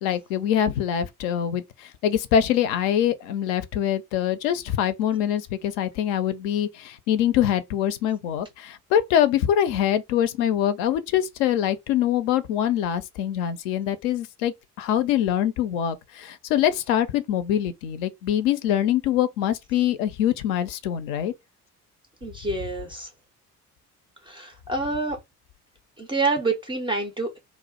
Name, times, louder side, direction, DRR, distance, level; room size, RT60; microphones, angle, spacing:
voice 1, 0.0-21.3, left 10 dB, 55° left, 0.5 m, -24 dB
voice 2, 22.2-23.1 24.2-25.2 26.0-27.4, right 3 dB, 10° right, 0.4 m, -27 dB
2.3 x 2.1 x 3.6 m
figure-of-eight pair, 50°, 45 cm